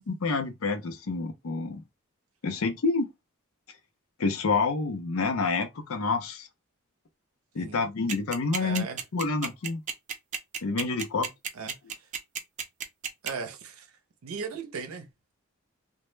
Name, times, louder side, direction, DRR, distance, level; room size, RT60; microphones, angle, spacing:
voice 1, 0.0-1.8 2.4-3.1 4.2-6.5 7.5-8.8 9.1-9.8 10.6-11.3, left 4 dB, 85° left, 0.5 m, -28 dB
sound 1, 8.1-13.3, right 7 dB, 35° right, 0.4 m, -32 dB
voice 2, 8.6-9.0 11.5-12.1 13.2-13.9 14.2-15.1, right 5 dB, 85° right, 0.5 m, -37 dB
2.1 x 2.0 x 3.1 m
head